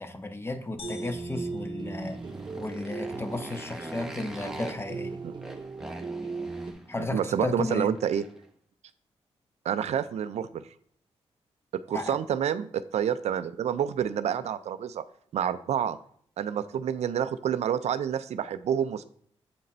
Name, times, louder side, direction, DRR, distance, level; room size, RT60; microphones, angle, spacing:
voice 1, 0.0-2.2 2.6-5.2 6.9-7.9 11.9-12.2, left 2 dB, 20° left, 8 dB, 0.8 m, -34 dB
sound 1, 0.8-2.7, left 5 dB, 55° left, 0.7 m, -49 dB
sound 2, 0.8-6.7, right 4 dB, 40° right, 0.8 m, -38 dB
Motorcycle, 1.8-8.5, right 1 dB, 5° right, 1.0 m, -43 dB
voice 2, 7.0-8.2 9.7-10.6 11.7-15.0 15.3-16.0 16.4-19.0, right 9 dB, 75° right, 13 dB, 0.4 m, -28 dB
7.6 x 3.9 x 4.2 m, 0.62 s
cardioid pair, 65°, 11 cm